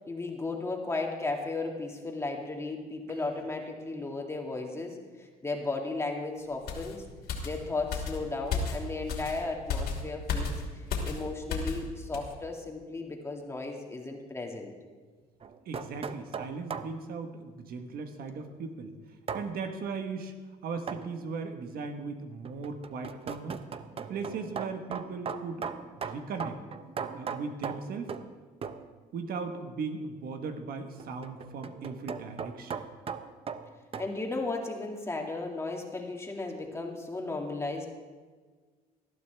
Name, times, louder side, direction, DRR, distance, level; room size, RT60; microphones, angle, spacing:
voice 1, 0.1-7.0 7.4-14.7 34.0-38.0, left 3 dB, 15° left, 1 dB, 2.2 m, -35 dB
sound 1, 6.7-11.9 12.1-12.3, left 4 dB, 70° left, 2.8 m, -34 dB
sound 2, 15.4-17.0 19.3-19.5 20.9-21.1 22.4-28.3 28.6-28.9 31.0-34.1, right 6 dB, 35° right, 0.7 m, -38 dB
voice 2, 15.6-18.9 19.3-20.3 20.6-23.6 24.1-25.7 26.1-26.6 27.1-28.2 29.1-32.9, right 4 dB, 65° right, 6 dB, 1.3 m, -37 dB
19.0 x 12.5 x 3.5 m, 1.5 s
cardioid pair, 110°, 17 cm